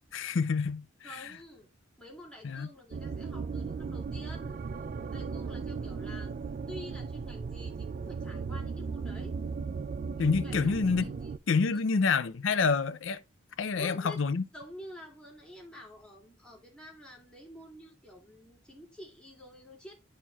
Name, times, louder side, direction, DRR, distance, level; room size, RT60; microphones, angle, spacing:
voice 1, 0.1-1.3 2.4-2.7 10.2-11.1 11.5-13.2 13.6-14.4, left 5 dB, 65° left, 0.5 m, -28 dB
voice 2, 1.0-1.7 2.0-4.6 5.1-6.4 6.7-9.3 10.4-11.3 11.7-11.8 13.7-14.2 14.5-20.0, equal, 5° left, 2.5 m, -49 dB
sound 1, 2.9-11.4, right 5 dB, 40° right, 0.3 m, -37 dB
11.5 x 4.5 x 2.3 m
head